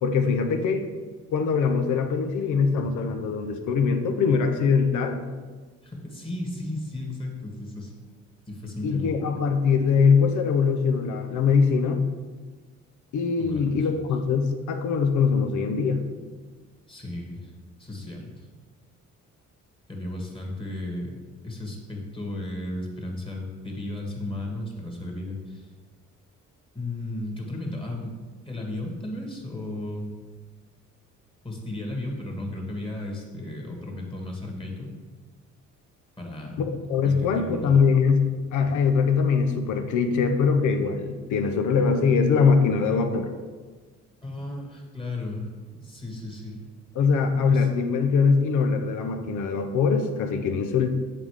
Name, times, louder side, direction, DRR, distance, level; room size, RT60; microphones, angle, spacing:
voice 1, 0.0-0.9 1.3-5.2 8.8-12.0 13.1-16.0 36.6-43.3 47.0-50.9, left 5 dB, 75° left, 6 dB, 0.8 m, -22 dB
voice 2, 5.8-7.9 8.5-9.1 13.4-13.8 16.9-17.5 17.8-18.5 19.9-25.7 26.7-28.1 28.4-30.1 31.4-34.9 36.2-36.7 37.0-37.8 44.2-45.5 45.7-46.6 47.2-47.7, left 1 dB, 15° left, 0 dB, 1.6 m, -34 dB
7.6 x 3.8 x 4.9 m, 1.4 s
cardioid pair, 90°, 30 cm